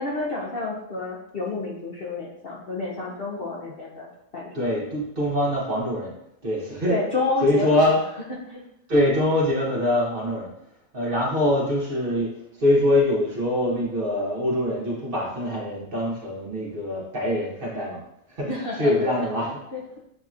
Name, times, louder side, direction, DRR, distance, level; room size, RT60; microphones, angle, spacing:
voice 1, 0.0-4.7 6.9-8.0 8.5-8.6 18.5-20.0, left 3 dB, 50° left, -3 dB, 0.8 m, -30 dB
voice 2, 4.5-6.1 6.4-7.0 7.4-8.0 8.9-10.5 10.9-12.3 12.6-18.0 18.3-19.5, left 1 dB, 45° right, -3 dB, 1.2 m, -23 dB
7.5 x 2.8 x 2.4 m, 0.78 s
omnidirectional pair, 1.4 m